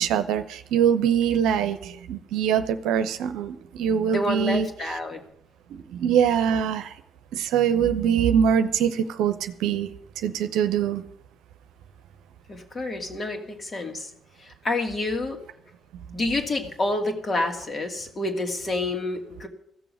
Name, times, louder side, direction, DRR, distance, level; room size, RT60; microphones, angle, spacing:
voice 1, 0.0-4.7 5.7-6.9 7.3-9.9 10.2-11.0 16.1-16.2, right 8 dB, 70° right, 9 dB, 0.8 m, -23 dB
voice 2, 4.1-5.2 12.5-14.1 14.4-15.4 16.1-19.5, left 2 dB, 40° left, 4 dB, 2.6 m, -28 dB
15.0 x 7.0 x 9.7 m, 0.71 s
hypercardioid pair, 45°, 0 cm